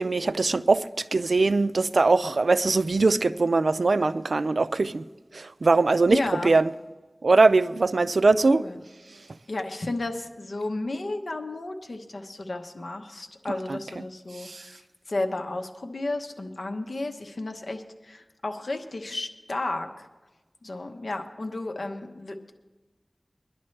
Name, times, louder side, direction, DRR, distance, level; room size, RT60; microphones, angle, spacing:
voice 1, 0.0-5.0 5.3-6.7 7.2-8.6 13.7-13.8 14.4-14.6, right 3 dB, 85° right, 0.4 m, -21 dB
voice 2, 6.1-6.5 8.5-8.8 9.5-20.1 20.6-22.5, left 2 dB, 80° left, 1.0 m, -33 dB
22.0 x 11.0 x 3.2 m
wide cardioid pair, 45°, 0 cm